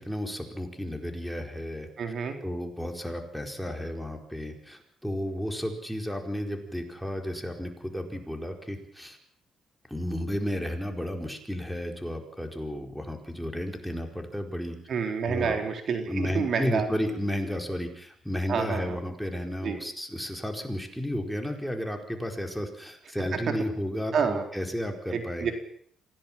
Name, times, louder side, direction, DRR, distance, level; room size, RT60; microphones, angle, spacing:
voice 1, 0.0-2.1 2.4-9.2 9.9-14.8 15.3-15.6 16.1-25.5, equal, ahead, 3 dB, 4.5 m, -33 dB
voice 2, 2.0-2.4 14.9-16.9 18.5-19.0 19.6-19.8 23.3-23.4 24.1-24.4 25.1-25.5, right 6 dB, 60° right, 5 dB, 4.2 m, -28 dB
26.0 x 17.0 x 7.5 m, 0.62 s
cardioid pair, 90°, 0 cm